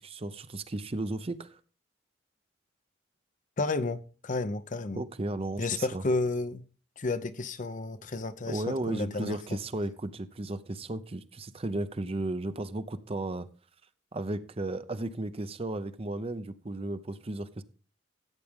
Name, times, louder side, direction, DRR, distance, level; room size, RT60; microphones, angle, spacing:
voice 1, 0.0-1.5 4.9-6.0 8.5-13.5 14.1-17.6, right 2 dB, 30° right, 0.6 m, -34 dB
voice 2, 3.6-5.0 5.6-6.6 7.0-9.6, left 3 dB, 40° left, 0.7 m, -32 dB
13.5 x 8.3 x 3.6 m
head